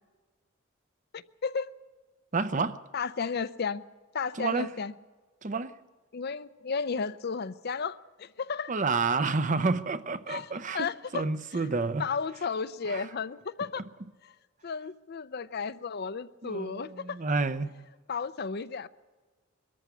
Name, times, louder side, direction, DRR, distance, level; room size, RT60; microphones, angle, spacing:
voice 1, 1.1-1.7 2.9-3.8 4.1-4.9 6.1-8.7 10.3-10.5 10.7-11.2 12.0-13.8 14.2-14.3 14.6-17.2 18.1-18.9, left 5 dB, 50° left, 0.6 m, -33 dB
voice 2, 2.3-2.8 4.3-4.7 5.4-5.7 8.7-10.9 11.1-12.1 12.8-13.1 16.4-17.7, right 4 dB, 35° right, 0.7 m, -29 dB
22.5 x 14.0 x 8.5 m
head